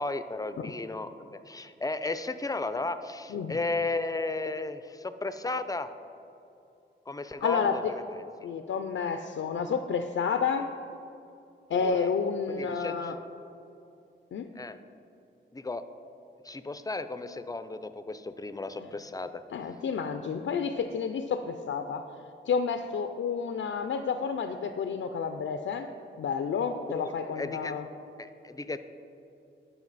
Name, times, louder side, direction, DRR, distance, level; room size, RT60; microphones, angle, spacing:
voice 1, 0.0-5.9 7.1-8.0 11.7-12.1 12.5-13.2 14.6-14.8 15.5-15.8 16.4-19.4 26.9-27.8 28.2-28.8, left 3 dB, 20° left, 11 dB, 0.4 m, -34 dB
voice 2, 7.4-7.8 8.4-10.7 11.7-13.2 14.3-14.5 19.5-22.0 22.5-25.9 26.2-27.8, left 6 dB, 80° left, 7 dB, 0.4 m, -30 dB
12.0 x 5.7 x 4.0 m, 2.7 s
cardioid pair, 75°, 21 cm